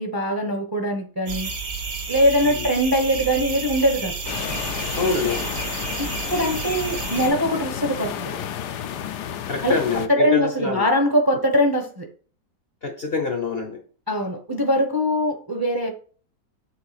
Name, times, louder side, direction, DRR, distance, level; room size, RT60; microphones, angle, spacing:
voice 1, 0.0-1.5 2.1-4.1 6.0-8.3 9.6-9.7 10.1-12.0 14.1-15.9, equal, 15° right, 4 dB, 0.9 m, -22 dB
sound 1, 1.3-7.3, right 4 dB, 55° right, 1.7 m, -31 dB
sound 2, 4.2-10.1, left 9 dB, 70° left, 1.2 m, -31 dB
voice 2, 4.9-5.5 9.5-10.9 12.8-13.8, left 4 dB, 40° left, 4 dB, 0.9 m, -26 dB
7.7 x 3.4 x 5.9 m, 0.42 s
omnidirectional pair, 1.9 m